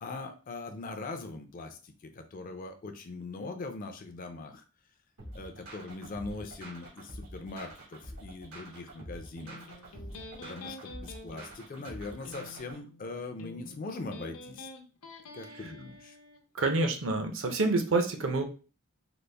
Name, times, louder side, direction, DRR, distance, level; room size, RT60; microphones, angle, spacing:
voice 1, 0.0-4.6 5.3-9.6 10.4-14.7 15.3-16.2, left 3 dB, 40° left, 7 dB, 0.4 m, -41 dB
sound 1, 5.2-12.8, right 1 dB, 90° right, 1.3 m, -46 dB
Electric guitar, 9.4-16.4, left 2 dB, 75° left, 0.6 m, -48 dB
voice 2, 16.5-18.4, right 3 dB, 60° right, 6 dB, 0.6 m, -27 dB
3.9 x 2.0 x 3.3 m, 0.35 s
head